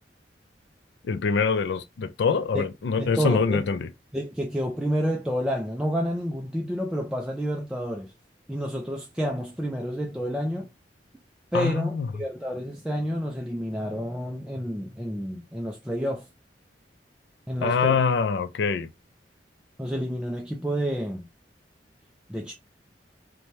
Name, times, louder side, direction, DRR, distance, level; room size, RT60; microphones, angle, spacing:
voice 1, 1.1-3.9 11.5-12.1 17.6-18.9, left 5 dB, 70° left, 0.4 m, -24 dB
voice 2, 3.0-3.7 4.1-8.1 8.5-10.7 11.5-16.3 17.5-18.0 19.8-21.3 22.3-22.5, equal, 5° right, 0.3 m, -29 dB
2.7 x 2.1 x 3.0 m
head